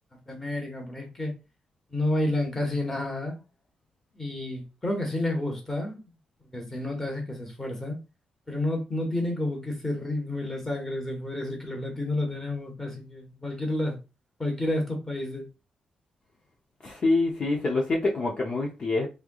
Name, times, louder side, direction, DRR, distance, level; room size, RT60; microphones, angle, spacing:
voice 1, 0.3-1.3 1.9-3.4 4.2-6.0 6.5-8.0 8.5-13.9 14.4-15.5, left 1 dB, 15° left, 1.2 m, -30 dB
voice 2, 16.8-19.1, left 2 dB, 35° left, 0.7 m, -26 dB
3.6 x 3.3 x 2.3 m
wide cardioid pair, 165°, 3 cm